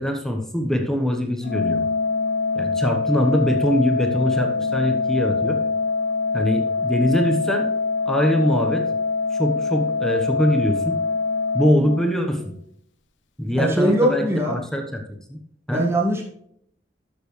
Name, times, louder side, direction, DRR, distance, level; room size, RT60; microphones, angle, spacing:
voice 1, 0.0-1.8 2.5-5.6 6.3-7.7 8.1-8.9 9.3-11.0 11.5-12.5 13.4-15.0 15.3-15.4 15.7-15.8, equal, 5° left, 3 dB, 1.1 m, -22 dB
Organ, 1.4-12.5, left 4 dB, 90° left, 1.0 m, -24 dB
voice 2, 13.6-14.6 15.7-16.3, equal, 15° right, -2 dB, 1.9 m, -21 dB
12.5 x 6.9 x 3.2 m, 0.70 s
head